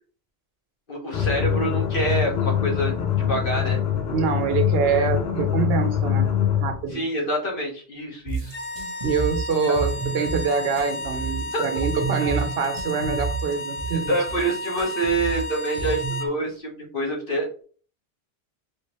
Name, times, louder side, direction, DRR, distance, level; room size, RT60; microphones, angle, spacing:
voice 1, 0.9-3.0 3.3-3.8 6.9-8.5 11.5-11.7 14.1-17.5, right 1 dB, 60° left, -1 dB, 1.3 m, -26 dB
sound 1, 1.1-6.8, left 9 dB, 80° left, 0.9 m, -24 dB
voice 2, 4.1-6.3 6.6-7.0 9.0-14.2, right 5 dB, 70° right, 6 dB, 0.9 m, -25 dB
sound 2, 8.3-16.3, right 5 dB, 40° right, 0.6 m, -30 dB
sound 3, 8.4-16.3, left 1 dB, 40° left, 0.6 m, -33 dB
3.2 x 2.8 x 3.0 m, 0.42 s
omnidirectional pair, 1.1 m